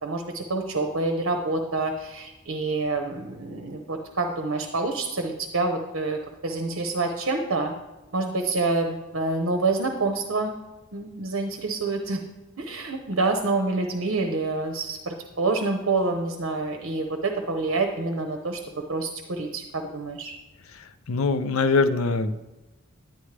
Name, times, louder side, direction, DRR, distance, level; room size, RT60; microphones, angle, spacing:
voice 1, 0.0-7.7 8.1-10.5 10.9-12.2 12.6-20.3, right 3 dB, 75° right, 4 dB, 0.8 m, -27 dB
voice 2, 21.1-22.4, left 4 dB, 85° left, 10 dB, 0.6 m, -22 dB
10.0 x 9.8 x 3.3 m, 1.1 s
head